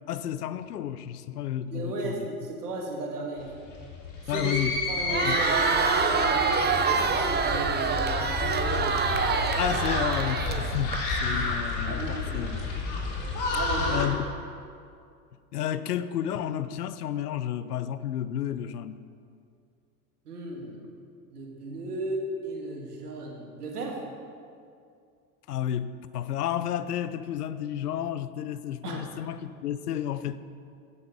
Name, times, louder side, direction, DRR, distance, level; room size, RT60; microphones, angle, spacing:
voice 1, 0.1-2.3 4.3-4.8 5.2-5.4 9.6-12.7 13.9-14.2 15.5-19.0 25.5-30.4, left 10 dB, 85° left, 14 dB, 0.6 m, -31 dB
voice 2, 1.7-3.5 4.3-4.5 4.9-9.3 11.3-11.4 11.8-12.6 13.5-14.0 20.3-20.8 21.3-24.0 28.8-29.0, right 2 dB, 80° right, 0 dB, 2.1 m, -35 dB
sound 1, 3.4-14.1, left 3 dB, 45° left, 3.4 m, -30 dB
Crowd, 5.0-11.0, right 5 dB, 20° right, 0.8 m, -26 dB
16.0 x 6.5 x 5.1 m, 2.4 s
hypercardioid pair, 80°, 45 cm